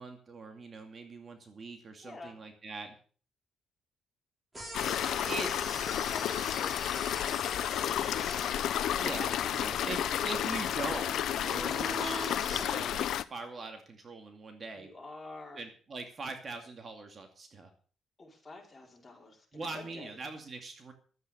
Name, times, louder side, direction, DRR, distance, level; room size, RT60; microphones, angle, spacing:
voice 1, 0.0-2.9 5.3-5.5 9.0-14.9 15.5-17.7 19.5-20.9, right 3 dB, 40° right, 5 dB, 2.4 m, -42 dB
voice 2, 2.0-2.4 5.0-5.6 5.9-8.2 9.0-10.4 14.7-15.6 18.2-20.2, left 3 dB, 25° left, -1 dB, 5.0 m, -48 dB
sound 1, 4.5-12.7, right 1 dB, 20° right, 4.2 m, -43 dB
sound 2, 4.7-13.2, left 11 dB, 75° left, 0.6 m, -32 dB
12.5 x 8.9 x 6.5 m, 0.43 s
cardioid pair, 90°, 0 cm